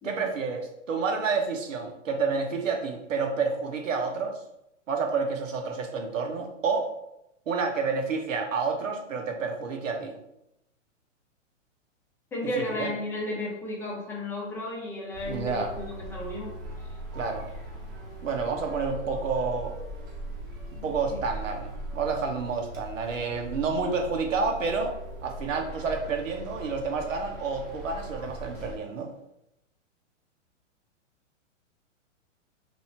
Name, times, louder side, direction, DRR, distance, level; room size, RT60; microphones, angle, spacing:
voice 1, 0.0-4.4 4.9-6.9 7.5-10.2 12.5-12.9 15.3-15.8 17.1-17.5 18.2-19.7 20.8-24.9 25.2-29.1, right 4 dB, 90° right, 4 dB, 0.9 m, -29 dB
voice 2, 12.3-16.6 20.8-20.9 21.1-21.2, left 1 dB, 5° left, -3 dB, 0.6 m, -34 dB
sound 1, 15.1-28.8, right 1 dB, 25° right, 1.2 m, -40 dB
3.0 x 2.7 x 4.2 m, 0.85 s
hypercardioid pair, 140°, 37 cm